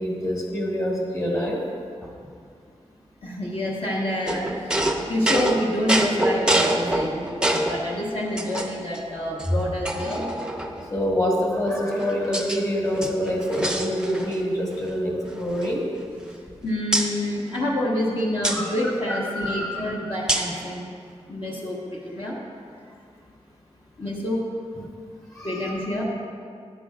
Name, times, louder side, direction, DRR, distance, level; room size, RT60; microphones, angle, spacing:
voice 1, 0.0-1.6 2.0-2.1 9.5-9.8 10.9-15.8 18.5-18.8 19.1-19.9 24.7-24.9 25.3-25.9, equal, 30° left, -2 dB, 1.9 m, -26 dB
voice 2, 3.2-7.2 7.5-10.2 16.6-20.8 21.3-22.4 24.0-24.4 25.4-26.0, left 1 dB, 50° left, -5 dB, 1.3 m, -27 dB
sound 1, 4.3-7.8 8.4-9.0 9.4-9.5 9.8-10.9 11.7-12.6 12.9-14.5 14.7-14.9 15.2-16.5 16.9-17.1 18.4-18.6 20.3-20.6, right 1 dB, 5° right, 0.6 m, -26 dB
11.5 x 10.5 x 2.5 m, 2.2 s
wide cardioid pair, 120°, 12 cm